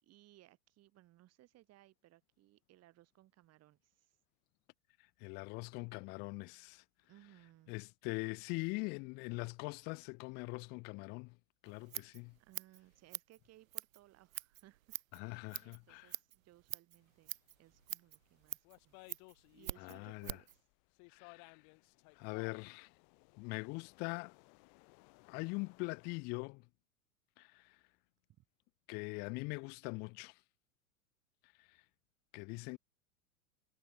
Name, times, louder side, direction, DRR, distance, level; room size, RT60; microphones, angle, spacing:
voice 1, 0.0-4.1 7.1-7.7 12.4-19.0 19.5-20.6 28.4-28.5, right 15 dB, 35° right, 3.5 m, -64 dB
voice 2, 5.2-6.8 7.7-11.4 11.6-12.3 15.1-16.1 19.8-20.4 21.1-21.6 22.2-22.9 23.4-24.3 25.3-26.7 27.4-27.8 28.9-30.4 32.3-32.8, left 29 dB, 25° left, 0.4 m, -42 dB
Scissors, 11.6-20.6, right 13 dB, 70° right, 0.7 m, -47 dB
sound 1, 17.3-20.1 20.5-26.2, left 39 dB, 40° left, 1.1 m, -61 dB
figure-of-eight pair, 90°, 42 cm